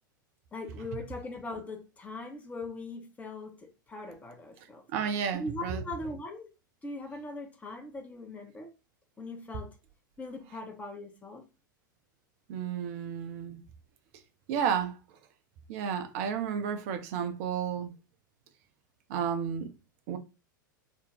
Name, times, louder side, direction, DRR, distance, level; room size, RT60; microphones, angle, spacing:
voice 1, 0.5-4.8 5.3-6.5 6.8-8.7 9.2-9.8 10.2-11.5, left 2 dB, 15° left, 0.6 m, -40 dB
voice 2, 4.9-5.8 12.5-13.6 14.5-15.0 15.7-17.9 19.1-19.7 20.1-20.2, right 7 dB, 45° right, 0.5 m, -32 dB
2.5 x 2.0 x 3.1 m
figure-of-eight pair, 90°, 11 cm